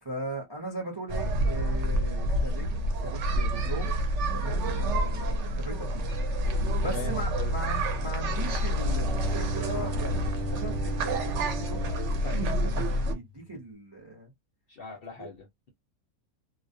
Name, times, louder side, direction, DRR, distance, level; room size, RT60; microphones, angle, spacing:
voice 1, 0.0-2.7 3.0-3.9 4.3-6.1 6.8-14.3 15.2-15.3, right 1 dB, 30° right, 0.5 m, -39 dB
sound 1, 1.1-13.1, right 1 dB, 65° right, 0.8 m, -28 dB
voice 2, 6.8-7.5 8.2-8.4 14.7-15.7, left 6 dB, 55° left, 0.7 m, -41 dB
Bowed string instrument, 8.6-13.5, equal, 90° right, 1.1 m, -39 dB
2.3 x 2.0 x 2.6 m
omnidirectional pair, 1.5 m